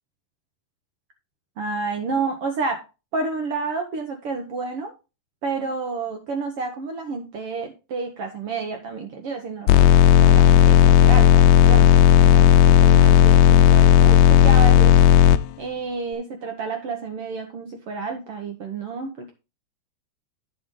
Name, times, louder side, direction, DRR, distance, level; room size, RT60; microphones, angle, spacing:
voice 1, 1.6-2.8 3.1-4.9 5.4-15.0 15.6-19.3, right 4 dB, 60° right, 4 dB, 1.6 m, -30 dB
sound 1, 9.7-15.4, left 11 dB, 90° left, 1.5 m, -13 dB
9.1 x 6.8 x 3.7 m, 0.30 s
omnidirectional pair, 3.7 m